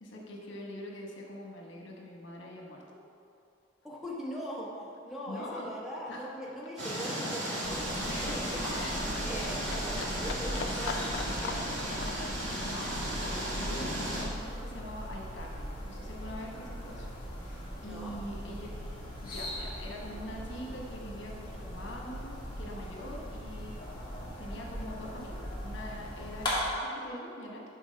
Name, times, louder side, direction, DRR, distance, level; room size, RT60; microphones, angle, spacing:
voice 1, 0.0-3.0 5.3-5.8 6.1-6.3 8.1-9.0 12.6-18.7 19.2-23.7 24.4-27.6, left 1 dB, 85° left, -1 dB, 1.0 m, -44 dB
Livestock farm animals working animals, 3.8-4.0 4.2-15.2 15.5-16.5 16.9-17.0, left 5 dB, 65° left, 0.4 m, -44 dB
voice 2, 3.8-8.0 8.2-8.7 9.2-11.7 17.8-18.1, equal, ahead, -5 dB, 0.8 m, -41 dB
sound 1, 6.8-14.2, equal, 75° right, 1.6 m, -35 dB
sound 2, 7.6-26.5, equal, 25° left, 1.4 m, -40 dB
6.1 x 3.9 x 5.2 m, 2.5 s
head